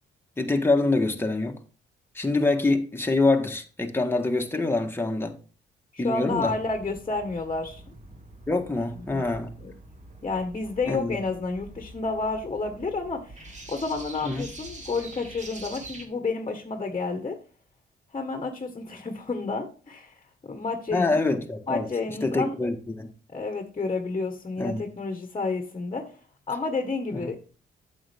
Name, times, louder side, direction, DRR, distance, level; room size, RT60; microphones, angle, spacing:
voice 1, 0.4-1.5 2.1-5.4 6.0-6.5 8.5-9.5 10.9-11.2 14.2-14.5 20.9-23.1 24.6-24.8 27.1-27.3, left 2 dB, 10° left, 1.6 m, -25 dB
voice 2, 5.9-7.8 9.0-9.3 9.6-9.7 10.2-17.3 18.1-20.1 20.4-21.2 21.7-22.6 23.3-26.0 26.5-27.4, left 3 dB, 30° left, 1.5 m, -30 dB
sound 1, 6.3-16.1, right 2 dB, 35° right, 2.2 m, -45 dB
8.7 x 7.2 x 3.6 m
cardioid pair, 90°, 20 cm